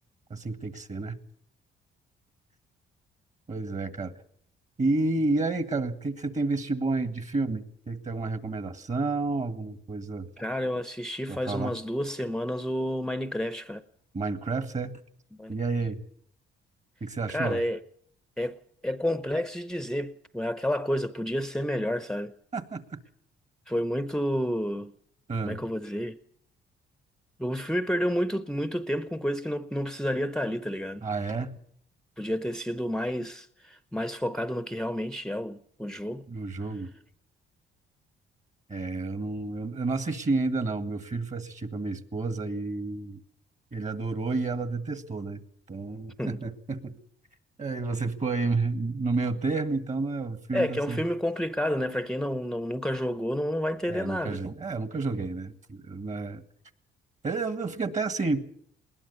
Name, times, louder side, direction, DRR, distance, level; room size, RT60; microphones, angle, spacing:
voice 1, 0.3-1.2 3.5-4.2 4.8-10.3 11.3-11.7 14.1-14.9 15.5-16.0 17.0-17.6 22.5-22.8 25.3-25.6 31.0-31.5 36.3-36.9 38.7-43.2 43.7-45.4 45.7-47.0 47.6-51.0 53.9-56.4 57.2-58.5, right 3 dB, 35° right, 1.9 m, -30 dB
voice 2, 10.4-13.8 15.3-15.6 17.3-17.8 18.4-18.6 18.8-22.3 23.7-24.9 25.4-26.2 27.4-31.1 32.2-36.3 46.2-46.4 50.5-54.4, equal, 5° left, 0.8 m, -30 dB
20.5 x 19.0 x 7.1 m
cardioid pair, 90°, 20 cm